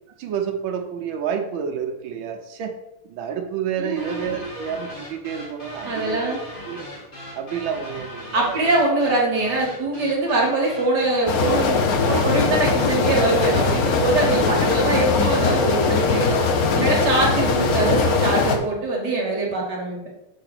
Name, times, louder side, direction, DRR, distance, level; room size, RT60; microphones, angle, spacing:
voice 1, 0.2-2.7 3.0-6.4 6.7-6.9 7.3-8.7, right 7 dB, 70° right, 4 dB, 1.6 m, -29 dB
voice 2, 3.8-4.3 5.9-6.4 8.3-16.4 16.7-20.1, right 2 dB, 50° right, -2 dB, 2.0 m, -23 dB
sound 1, 4.0-11.4, left 1 dB, 25° left, 1.6 m, -39 dB
sound 2, 11.3-18.6, left 4 dB, 60° left, 0.9 m, -20 dB
7.0 x 3.8 x 6.0 m, 0.88 s
omnidirectional pair, 2.4 m